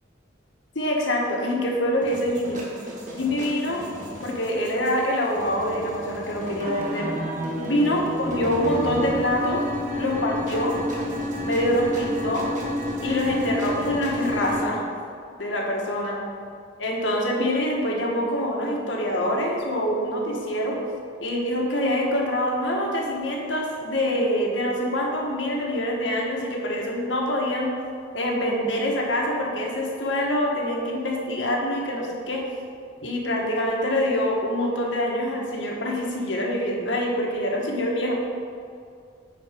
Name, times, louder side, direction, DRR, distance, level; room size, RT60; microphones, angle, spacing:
voice 1, 0.7-2.6 3.1-3.8 4.2-7.1 7.6-9.6 9.9-10.8 11.4-12.5 13.0-14.8 15.4-16.1 16.8-20.8 21.2-27.7 28.1-32.4 33.0-38.1, left 1 dB, 80° left, -1 dB, 1.5 m, -25 dB
sound 1, 2.0-14.6, equal, 45° right, 1.5 m, -31 dB
9.4 x 4.3 x 5.1 m, 2.3 s
head